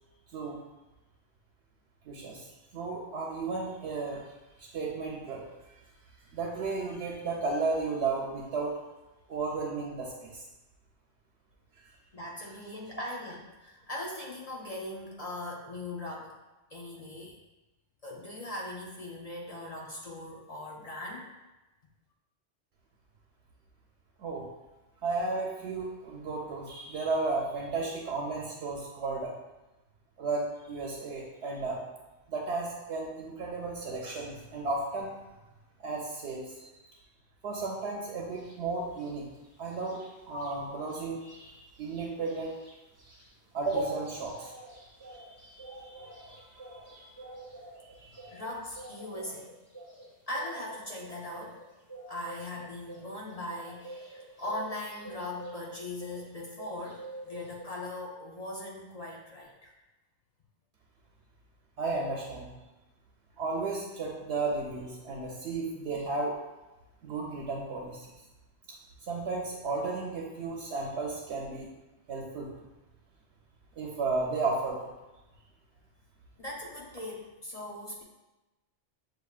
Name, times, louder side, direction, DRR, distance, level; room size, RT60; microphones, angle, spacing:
voice 1, 2.1-2.5 2.7-4.3 4.6-5.8 6.3-8.8 9.3-10.4 24.2-24.5 25.0-29.4 30.2-31.8 32.3-35.2 35.8-36.7 37.4-39.3 39.6-42.5 43.5-44.5 45.1-47.2 47.9-48.3 61.8-62.5 63.4-66.4 67.0-68.1 68.7-68.8 69.0-71.7 72.1-72.5 73.8-74.9, right 3 dB, 70° right, -1 dB, 0.8 m, -34 dB
voice 2, 12.1-16.4 16.7-17.3 18.0-21.3 48.3-49.5 50.3-51.6 52.1-59.7 76.4-78.0, left 1 dB, 45° left, -3 dB, 0.5 m, -40 dB
sound 1, 38.3-38.6 38.9-40.5 40.9-41.0 41.3-56.3 56.6-57.7, right 2 dB, 15° right, 0.7 m, -48 dB
6.8 x 2.7 x 2.3 m, 1.1 s
omnidirectional pair, 1.2 m